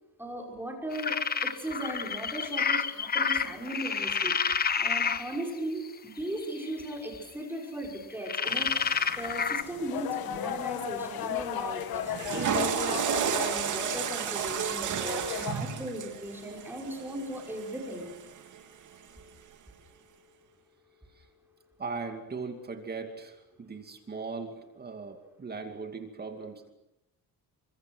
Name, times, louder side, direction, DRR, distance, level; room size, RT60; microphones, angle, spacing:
voice 1, 0.2-18.1, right 1 dB, 5° right, 1 dB, 5.5 m, -37 dB
sound 1, 0.9-5.4 6.4-6.9 8.3-9.6, left 6 dB, 25° left, 1.1 m, -29 dB
sound 2, 8.4-15.5, left 9 dB, 70° left, 2.2 m, -36 dB
Water / Toilet flush, 12.0-18.3, right 8 dB, 50° right, 2.7 m, -32 dB
voice 2, 21.8-26.7, right 4 dB, 25° right, 5 dB, 2.6 m, -39 dB
30.0 x 25.0 x 6.3 m, 0.85 s
cardioid pair, 170°, 38 cm